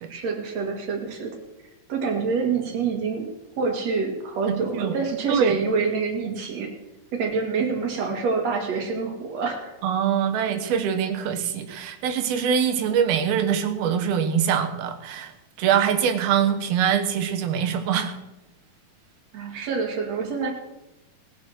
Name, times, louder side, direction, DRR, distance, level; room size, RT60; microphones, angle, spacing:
voice 1, 0.1-1.4 1.9-3.3 3.6-6.7 7.1-9.8 19.3-20.5, right 5 dB, 50° right, 3 dB, 2.9 m, -26 dB
voice 2, 4.5-5.0 5.3-5.6 9.8-15.3 15.6-18.2 19.5-19.7, right 8 dB, 85° right, 6 dB, 3.1 m, -24 dB
19.0 x 7.7 x 6.4 m, 0.98 s
omnidirectional pair, 4.2 m